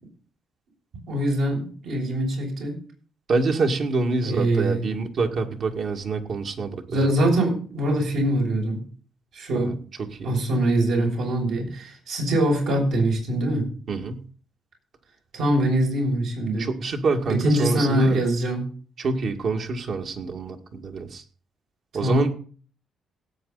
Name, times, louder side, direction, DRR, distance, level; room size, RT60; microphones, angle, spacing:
voice 1, 1.1-2.7 4.2-4.8 6.9-8.8 9.3-9.7 10.2-13.7 15.3-16.7 17.3-18.6 22.0-22.2, right 1 dB, 80° right, -1 dB, 6.9 m, -23 dB
voice 2, 3.3-7.1 9.5-9.7 10.2-10.3 13.9-14.2 16.6-18.2 19.0-21.2 21.9-22.3, right 3 dB, 60° right, 3 dB, 2.2 m, -26 dB
17.5 x 8.7 x 4.1 m, 0.41 s
cardioid pair, 90°, 0 cm